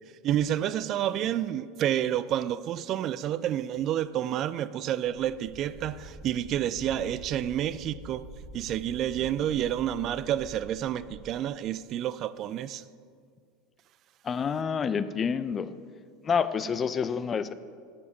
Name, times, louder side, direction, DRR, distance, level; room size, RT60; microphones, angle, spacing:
voice 1, 0.2-8.2 8.5-12.8, right 11 dB, 45° right, 16 dB, 0.3 m, -29 dB
sound 1, 5.1-11.2, equal, 50° left, 2.8 m, -46 dB
voice 2, 14.2-15.7 16.2-17.5, left 6 dB, 30° left, 14 dB, 0.5 m, -28 dB
9.9 x 6.9 x 5.5 m, 2.1 s
hypercardioid pair, 85°, 0 cm